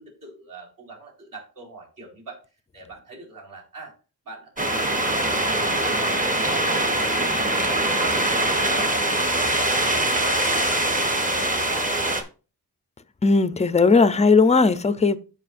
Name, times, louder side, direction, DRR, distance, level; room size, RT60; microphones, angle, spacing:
voice 1, 0.0-2.4 2.7-3.9 4.2-11.8, right 3 dB, 55° right, 4.5 m, -42 dB
sound 1, 4.6-12.2, right 1 dB, 20° right, 1.2 m, -23 dB
voice 2, 13.2-15.2, left 4 dB, 20° left, 0.5 m, -17 dB
13.0 x 5.1 x 2.5 m
wide cardioid pair, 120°, 39 cm